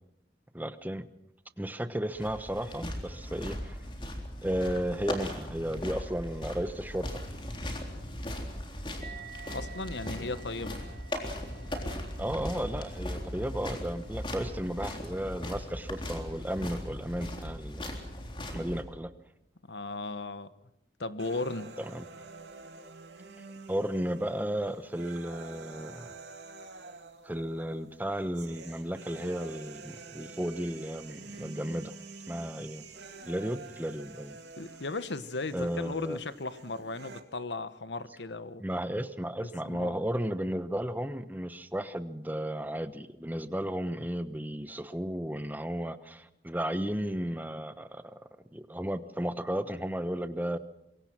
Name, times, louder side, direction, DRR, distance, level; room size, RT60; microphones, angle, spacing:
voice 1, 0.5-1.1 1.6-3.8 4.4-7.2 12.2-17.9 18.5-19.1 21.8-22.0 23.7-26.2 27.2-31.9 32.3-32.8 33.3-34.4 35.5-36.2 38.6-48.2 48.5-50.6, equal, 10° right, 11 dB, 1.0 m, -34 dB
sound 1, 2.1-18.8, left 1 dB, 30° left, 3.6 m, -38 dB
sound 2, 9.0-15.9, right 7 dB, 50° right, 2.9 m, -52 dB
voice 2, 9.5-10.8 19.7-20.5 21.0-21.7 34.6-38.6 39.6-40.0, left 3 dB, 85° left, 13 dB, 1.2 m, -36 dB
sound 3, 21.2-37.2, right 3 dB, 90° right, 2.6 m, -48 dB
25.5 x 22.5 x 6.1 m, 0.83 s
head